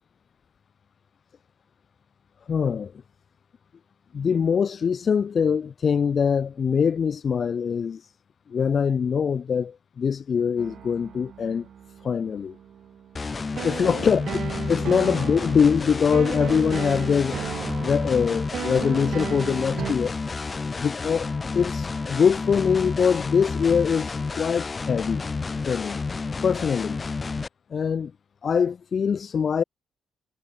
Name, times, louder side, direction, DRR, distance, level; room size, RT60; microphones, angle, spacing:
voice 1, 2.5-2.9 4.1-8.1 8.5-11.7 12.0-12.5 13.6-14.2 14.7-17.4 17.8-20.2 20.8-25.2 25.7-26.0 26.4-27.0 27.7-28.1 28.4-29.6, left 6 dB, 50° left, 0.4 m, -23 dB
sound 1, 10.6-19.9, right 9 dB, 65° right, 0.3 m, -35 dB
sound 2, 13.2-27.5, left 4 dB, 30° left, 0.9 m, -30 dB
Wind instrument woodwind instrument, 17.2-25.0, left 1 dB, 10° left, 1.8 m, -46 dB
cardioid pair, 75°, 0 cm